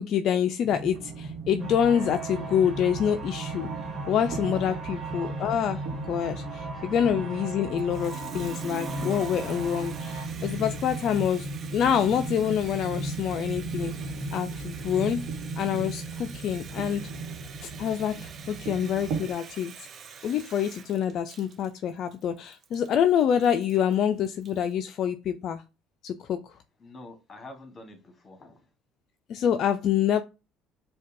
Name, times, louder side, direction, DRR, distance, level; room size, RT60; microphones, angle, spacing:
voice 1, 0.0-3.7 4.1-13.9 14.3-15.3 15.6-17.1 17.6-19.9 20.2-25.6 26.0-26.4 29.3-30.2, left 9 dB, 60° left, 0.3 m, -26 dB
sound 1, 0.6-19.3, right 3 dB, 70° right, 1.1 m, -36 dB
sound 2, 1.6-10.3, right 5 dB, 30° right, 1.6 m, -41 dB
Water tap faucet, 7.8-24.7, right 6 dB, 45° right, 0.5 m, -46 dB
voice 2, 26.8-28.6, left 2 dB, 30° left, 1.2 m, -46 dB
5.0 x 2.2 x 2.5 m
supercardioid pair, 85°, 0 cm